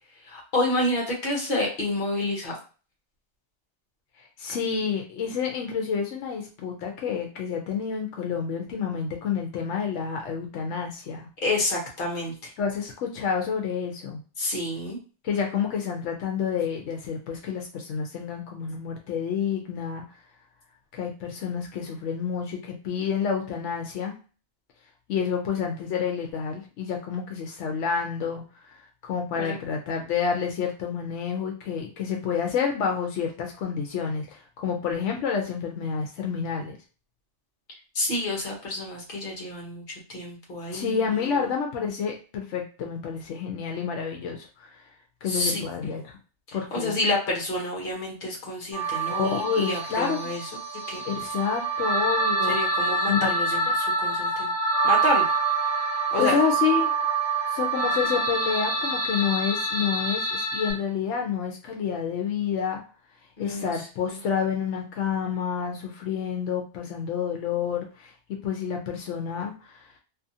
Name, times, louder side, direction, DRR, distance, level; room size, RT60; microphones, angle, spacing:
voice 1, 0.3-2.5 11.4-12.5 14.4-15.0 29.4-29.6 37.9-39.8 40.1-41.0 45.3-45.6 46.7-50.4 50.9-51.0 52.5-54.5 54.8-55.3 56.1-56.4 63.4-63.7 64.0-64.1, left 2 dB, 50° left, -1 dB, 1.1 m, -28 dB
voice 2, 4.2-11.3 12.6-14.2 15.2-20.0 20.9-24.1 25.1-28.4 28.7-36.8 40.7-44.8 45.2-46.2 46.5-47.0 49.2-50.3 51.1-52.7 53.1-53.3 53.7-53.8 56.2-56.9 57.5-62.8 63.4-69.9, left 7 dB, 80° left, 1 dB, 0.9 m, -29 dB
sound 1, 48.7-60.7, right 3 dB, 30° left, 1.2 m, -26 dB
2.7 x 2.5 x 2.6 m, 0.36 s
omnidirectional pair, 1.2 m